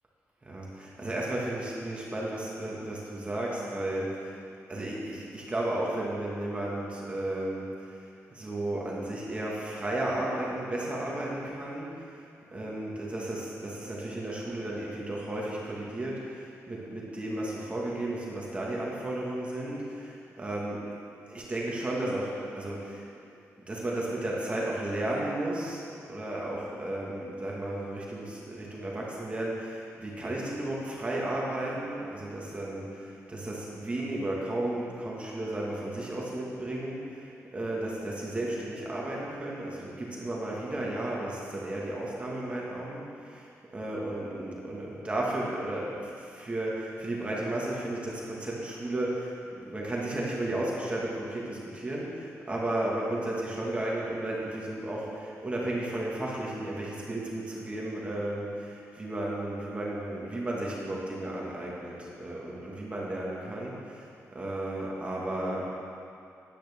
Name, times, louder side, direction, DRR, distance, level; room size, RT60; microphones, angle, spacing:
voice 1, 0.4-4.4 4.7-12.2 12.5-20.9 21.3-23.1 23.7-25.8 26.1-65.7, right 1 dB, 20° right, -4 dB, 1.7 m, -34 dB
13.0 x 10.5 x 3.6 m, 2.5 s
wide cardioid pair, 125°, 5 cm